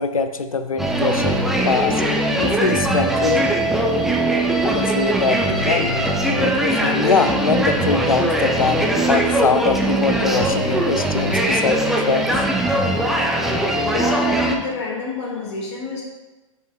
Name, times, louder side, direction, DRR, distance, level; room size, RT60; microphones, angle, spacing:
voice 1, 0.0-2.0 2.4-3.6 4.6-12.3, left 5 dB, 90° left, 10 dB, 0.5 m, -23 dB
sound 1, 0.8-14.6, right 1 dB, ahead, 0.6 m, -20 dB
voice 2, 13.8-16.0, left 4 dB, 55° left, -2 dB, 2.1 m, -27 dB
7.7 x 5.6 x 2.4 m, 1.2 s
hypercardioid pair, 115°, 17 cm